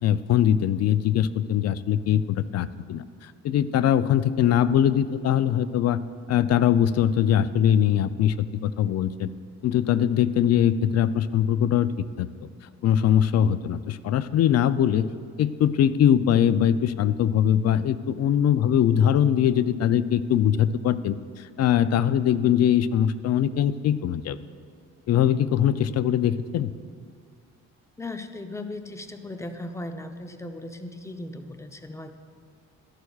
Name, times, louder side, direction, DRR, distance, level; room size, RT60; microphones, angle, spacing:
voice 1, 0.0-6.0 6.3-9.3 9.6-11.9 12.2-12.3 12.8-15.1 15.4-24.4 25.1-26.7, left 10 dB, 60° left, 15 dB, 0.4 m, -22 dB
voice 2, 28.0-32.1, left 2 dB, 10° left, 7 dB, 0.6 m, -37 dB
13.0 x 11.0 x 2.4 m, 2.2 s
cardioid pair, 90°, 30 cm